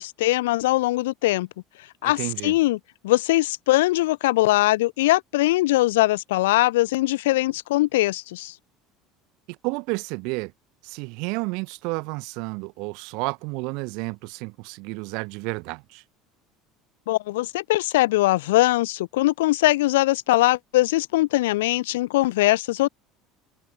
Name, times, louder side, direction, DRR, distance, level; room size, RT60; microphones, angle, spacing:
voice 1, 0.0-1.5 2.0-2.8 3.0-8.5 17.1-22.9, left 18 dB, 65° left, 0.4 m, -21 dB
voice 2, 2.0-2.5 9.6-10.5 10.8-16.0, right 29 dB, 55° right, 1.0 m, -31 dB
figure-of-eight pair, 65°, 0 cm